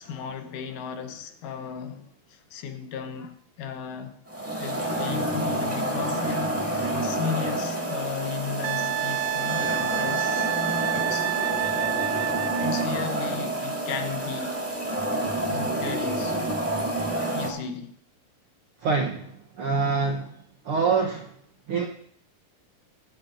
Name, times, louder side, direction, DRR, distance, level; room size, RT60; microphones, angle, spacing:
voice 1, 0.0-4.2 4.6-10.5 10.9-11.3 12.6-14.6 15.4-16.5 17.3-17.9, left 6 dB, 75° left, 2.4 m, -35 dB
sound 1, 4.3-17.5, right 1 dB, 10° right, 0.7 m, -28 dB
Wind instrument woodwind instrument, 8.6-12.9 15.6-15.7, right 16 dB, 90° right, 2.2 m, -29 dB
voice 2, 18.8-19.3 19.6-20.3 20.6-21.3 21.7-21.9, right 5 dB, 75° right, 1.3 m, -25 dB
23.0 x 8.9 x 2.6 m
omnidirectional pair, 3.8 m